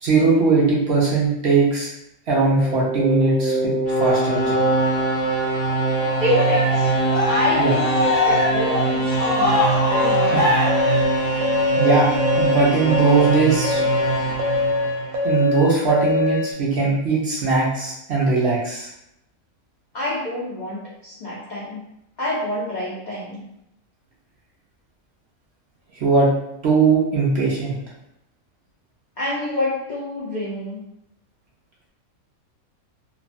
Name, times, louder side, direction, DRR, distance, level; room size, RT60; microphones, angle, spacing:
voice 1, 0.0-1.9 2.3-4.6 7.6-7.8 10.2-10.4 11.8-12.1 12.4-13.8 15.2-18.9 26.0-26.3 26.6-27.8, right 4 dB, 60° right, -5 dB, 0.7 m, -19 dB
sound 1, 2.4-15.4, right 2 dB, 55° left, 0.8 m, -23 dB
voice 2, 6.0-6.9 7.3-10.4 19.9-21.8 22.2-23.4 29.2-30.8, left 1 dB, 70° left, -6 dB, 0.4 m, -27 dB
Cheering, 6.1-11.6, left 2 dB, 20° right, 0.5 m, -23 dB
Electronic School Bell, 9.9-16.5, left 3 dB, 75° right, 1.1 m, -22 dB
3.1 x 2.0 x 2.5 m, 0.80 s
omnidirectional pair, 1.5 m